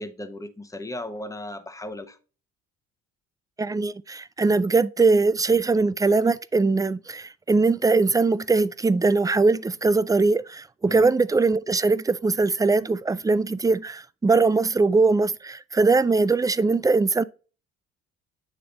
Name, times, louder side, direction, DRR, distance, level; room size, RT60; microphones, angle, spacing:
voice 1, 0.0-2.2 10.9-11.1, left 1 dB, 10° left, 1.1 m, -36 dB
voice 2, 3.6-17.2, right 3 dB, 10° right, 0.3 m, -21 dB
8.8 x 3.3 x 3.9 m
supercardioid pair, 65°, 31 cm